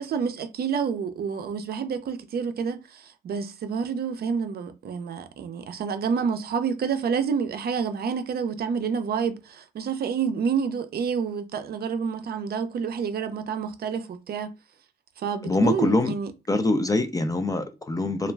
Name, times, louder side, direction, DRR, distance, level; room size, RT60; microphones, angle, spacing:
voice 1, 0.0-14.5 15.2-16.3, right 6 dB, 50° right, 0.5 m, -28 dB
voice 2, 15.4-16.1 16.5-18.3, left 2 dB, 20° left, 0.3 m, -24 dB
2.3 x 2.2 x 3.2 m
cardioid pair, 90°, 20 cm